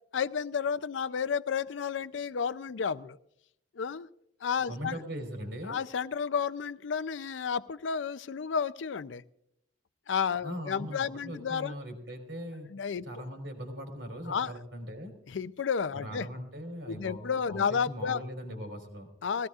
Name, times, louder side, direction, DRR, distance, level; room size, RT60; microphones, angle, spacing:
voice 1, 0.1-3.2 3.7-4.1 4.4-4.9 5.7-9.2 10.1-11.7 12.7-13.0 14.3-14.5 15.3-16.3 16.9-18.2 19.2-19.5, left 6 dB, 80° left, 16 dB, 0.5 m, -31 dB
voice 2, 4.7-5.8 10.4-12.7 13.0-15.1 15.9-19.1, equal, 75° right, 4 dB, 3.4 m, -40 dB
20.5 x 16.5 x 2.4 m, 0.76 s
head